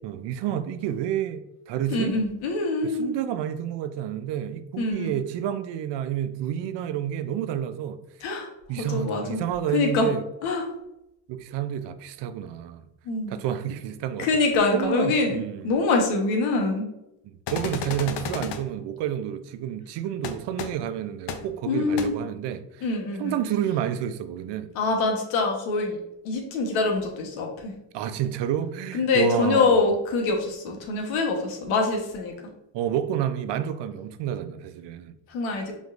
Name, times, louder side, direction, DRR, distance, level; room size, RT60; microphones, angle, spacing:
voice 1, 0.0-2.1 2.8-8.0 8.7-10.2 11.3-12.9 13.3-14.3 14.7-15.7 17.5-22.9 23.2-24.7 27.9-29.8 32.7-35.1, right 10 dB, 60° right, 0.5 m, -29 dB
voice 2, 1.9-3.1 4.8-5.1 8.2-8.5 8.8-9.4 9.7-10.1 10.4-10.7 13.0-13.3 14.2-16.9 21.7-22.1 22.8-23.4 24.7-26.0 26.2-27.7 28.9-32.3 35.3-35.8, left 3 dB, 75° left, 1.2 m, -24 dB
sound 1, 17.5-18.6 20.2-20.3 20.6-20.7 21.3-21.4 22.0-22.1, left 6 dB, 60° left, 0.7 m, -31 dB
5.1 x 3.6 x 2.5 m
supercardioid pair, 70°, 48 cm